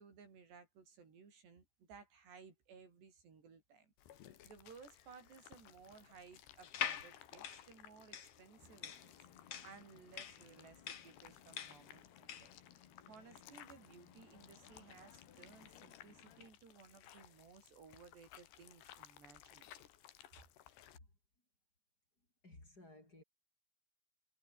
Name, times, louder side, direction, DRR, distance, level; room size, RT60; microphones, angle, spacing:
voice 1, 0.0-9.1 9.4-12.5 13.1-19.7, right 5 dB, 75° right, 7.5 m, -59 dB
sound 1, 4.0-21.0, left 11 dB, 85° left, 4.1 m, -60 dB
sound 2, 6.6-12.6, left 8 dB, 50° left, 2.0 m, -44 dB
sound 3, 8.6-16.5, left 9 dB, 65° left, 4.6 m, -64 dB
voice 2, 22.4-23.2, left 2 dB, 20° left, 5.7 m, -58 dB
omnidirectional pair, 4.9 m